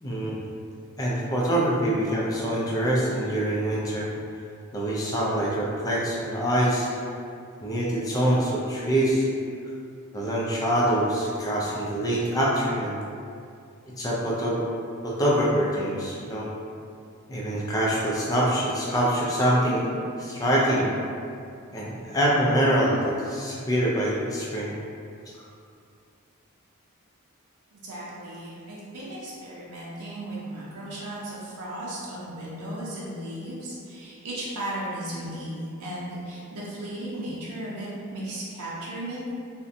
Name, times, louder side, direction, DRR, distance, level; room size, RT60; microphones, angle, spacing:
voice 1, 0.0-0.4 1.0-4.1 4.7-6.9 7.6-9.3 10.1-13.0 14.0-14.6 15.0-16.5 17.3-19.9 20.2-20.9 21.7-24.8, right 1 dB, 15° left, -5 dB, 0.3 m, -25 dB
voice 2, 27.7-39.3, right 1 dB, 90° right, -7 dB, 0.5 m, -35 dB
2.6 x 2.1 x 2.6 m, 2.4 s
head